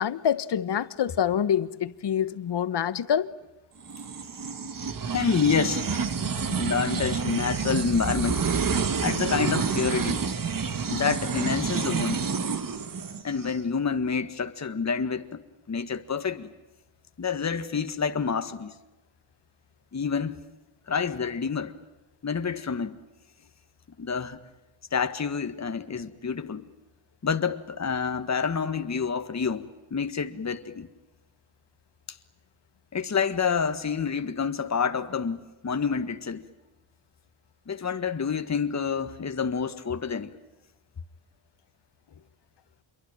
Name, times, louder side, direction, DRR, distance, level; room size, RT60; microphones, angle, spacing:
voice 1, 0.0-3.3, left 9 dB, 60° left, 1.3 m, -26 dB
sound 1, 3.9-13.6, right 5 dB, 45° right, 2.0 m, -29 dB
voice 2, 5.1-5.9 6.5-8.4 9.0-10.2 10.9-12.3 13.2-15.4 15.7-16.5 17.2-18.8 19.9-20.4 20.9-21.7 22.2-23.0 24.0-24.4 24.9-26.7 27.2-30.9 32.9-36.4 37.7-40.4, left 6 dB, 35° left, 1.7 m, -28 dB
27.0 x 23.5 x 9.0 m
cardioid pair, 95°, 47 cm